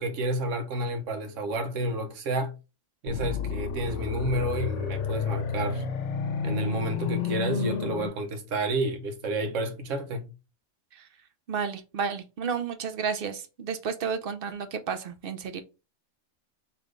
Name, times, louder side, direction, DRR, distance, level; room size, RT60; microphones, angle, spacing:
voice 1, 0.0-2.5 3.0-5.8 6.4-10.3, right 1 dB, 85° right, 1.2 m, -30 dB
sound 1, 3.1-8.1, left 6 dB, 75° left, 0.9 m, -31 dB
voice 2, 11.5-15.6, right 6 dB, 55° right, 0.7 m, -32 dB
3.3 x 3.1 x 3.7 m
omnidirectional pair, 1.3 m